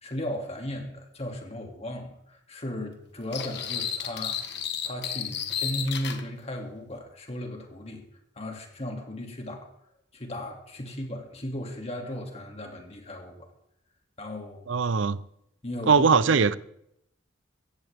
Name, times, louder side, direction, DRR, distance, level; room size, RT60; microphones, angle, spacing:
voice 1, 0.0-4.6 4.8-8.0 8.4-9.7 10.1-13.5 14.2-14.7 15.6-16.6, left 1 dB, 35° left, 2.5 m, -36 dB
sound 1, 3.3-6.2, left 8 dB, 60° left, 1.4 m, -32 dB
voice 2, 14.7-15.2 15.9-16.6, right 5 dB, 80° right, 0.6 m, -20 dB
15.5 x 15.5 x 3.6 m
head